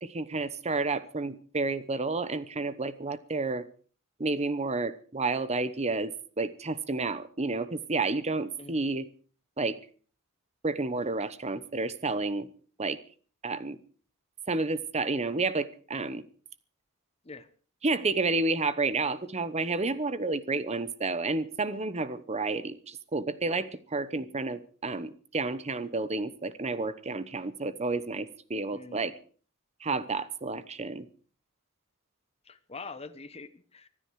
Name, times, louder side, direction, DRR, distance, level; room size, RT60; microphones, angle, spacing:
voice 1, 0.0-3.7 4.2-9.1 9.6-9.8 10.6-12.5 12.8-13.0 13.4-13.8 14.5-16.2 17.8-29.1 29.8-31.1, right 3 dB, 30° right, 15 dB, 0.9 m, -30 dB
voice 2, 28.7-29.0 32.5-33.9, left 4 dB, 30° left, 10 dB, 1.1 m, -44 dB
25.0 x 9.9 x 4.8 m, 0.41 s
head